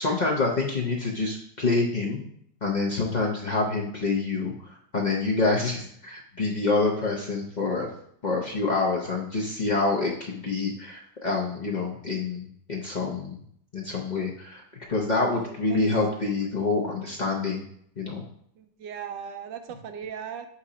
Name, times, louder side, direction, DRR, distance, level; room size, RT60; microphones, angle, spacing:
voice 1, 0.0-2.2 2.6-7.9 8.2-13.4 13.7-14.6 14.9-17.6 18.0-18.2, left 3 dB, 60° left, -3 dB, 0.4 m, -27 dB
voice 2, 15.3-15.8 18.6-20.5, right 8 dB, 80° right, 8 dB, 1.2 m, -38 dB
7.5 x 2.8 x 4.9 m, 0.67 s
omnidirectional pair, 2.0 m